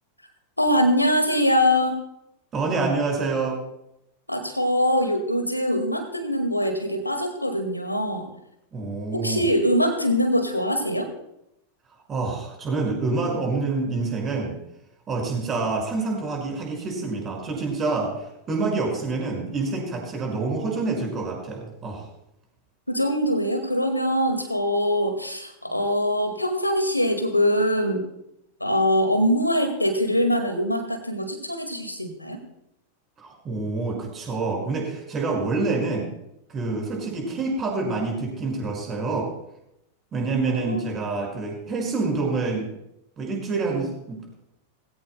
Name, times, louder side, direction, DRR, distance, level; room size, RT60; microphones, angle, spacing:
voice 1, 0.6-1.9 4.3-8.3 9.1-11.1 22.9-28.0 28.6-32.4 40.4-40.9, equal, 85° left, 6 dB, 1.9 m, -23 dB
voice 2, 2.5-3.6 8.7-9.5 12.1-14.6 15.1-18.1 18.5-22.0 33.2-36.1 36.5-39.3 40.1-42.7 43.2-44.2, right 3 dB, 25° right, 0 dB, 5.3 m, -27 dB
20.0 x 16.0 x 2.2 m, 0.81 s
figure-of-eight pair, 90°, 0 cm